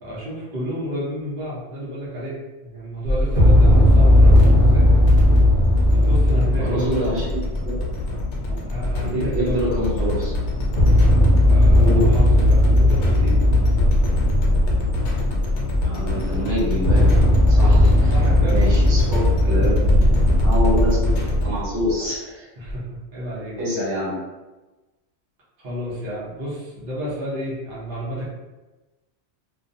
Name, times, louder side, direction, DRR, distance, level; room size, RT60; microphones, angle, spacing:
voice 1, 0.0-4.9 5.9-7.1 8.7-9.8 11.4-13.7 17.5-18.6 19.3-19.8 22.6-23.6 25.6-28.3, equal, 50° right, -8 dB, 0.9 m, -31 dB
sound 1, 3.0-6.9 10.5-15.8 16.6-21.9 22.7-22.8, left 1 dB, 40° left, 0.6 m, -16 dB
sound 2, 5.6-21.5, left 2 dB, 75° left, 0.9 m, -25 dB
voice 2, 6.6-7.4 7.6-7.8 8.5-8.6 9.0-10.3 11.8-12.1 15.8-17.1 17.5-18.1 18.5-20.0 20.4-21.1 21.4-22.5 23.6-24.1, equal, 75° right, -8 dB, 1.3 m, -26 dB
2.5 x 2.2 x 2.6 m, 1.1 s
omnidirectional pair, 1.2 m